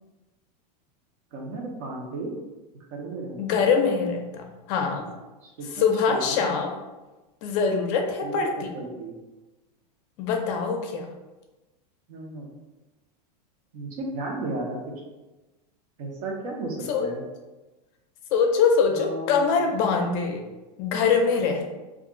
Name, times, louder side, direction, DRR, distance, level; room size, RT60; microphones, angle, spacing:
voice 1, 1.3-2.3 2.9-3.7 5.4-6.5 8.2-8.4 8.7-9.2 12.1-12.5 13.7-14.8 16.0-17.2 18.9-19.4, right 2 dB, 60° right, 0 dB, 0.8 m, -34 dB
voice 2, 3.4-5.1 5.7-6.8 7.4-8.7 10.2-11.1 16.9-17.1 18.3-20.4 20.8-21.7, left 5 dB, 50° left, 3 dB, 0.5 m, -23 dB
2.4 x 2.2 x 3.7 m, 1.1 s
supercardioid pair, 135°, 21 cm